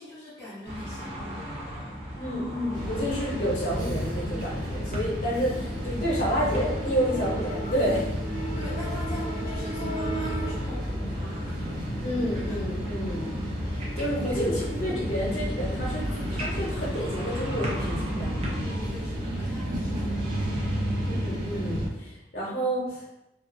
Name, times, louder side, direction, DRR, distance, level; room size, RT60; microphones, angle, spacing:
voice 1, 0.0-2.6 8.5-12.0 12.4-12.6 14.4-14.6 18.6-21.3, left 1 dB, 15° left, -10 dB, 0.5 m, -43 dB
sound 1, 0.6-18.6, equal, 35° right, 0.6 m, -37 dB
voice 2, 2.2-8.0 12.0-13.3 13.6-18.3 21.1-23.1, equal, 55° left, -7 dB, 0.6 m, -29 dB
sound 2, 2.7-21.9, equal, 80° right, 0.8 m, -32 dB
2.8 x 2.4 x 2.5 m, 0.94 s
head